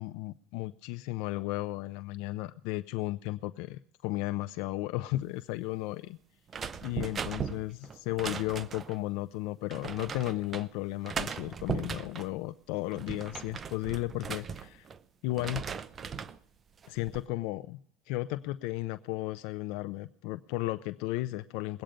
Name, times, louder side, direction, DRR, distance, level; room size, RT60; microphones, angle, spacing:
voice 1, 0.0-6.2 6.8-14.9 15.2-15.6 16.9-17.8 18.1-21.8, left 18 dB, 70° left, 13 dB, 0.5 m, -34 dB
sound 1, 6.5-9.0 9.7-10.7 11.0-12.3 12.8-15.0 15.3-16.4 16.8-17.2, right 6 dB, 25° right, 0.5 m, -38 dB
21.0 x 8.9 x 5.1 m, 0.69 s
cardioid pair, 150°, 0 cm